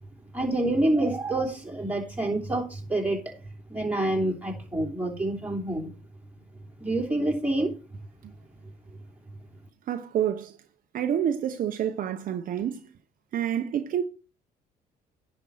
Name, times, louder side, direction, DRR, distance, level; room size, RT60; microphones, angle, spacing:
voice 1, 0.3-3.2 3.7-5.9 6.8-7.7, right 1 dB, 10° right, 3.0 m, -27 dB
voice 2, 9.9-10.6 10.9-12.8 13.3-14.0, right 9 dB, 55° right, 0.9 m, -28 dB
10.5 x 5.3 x 5.9 m
cardioid pair, 110°, 17 cm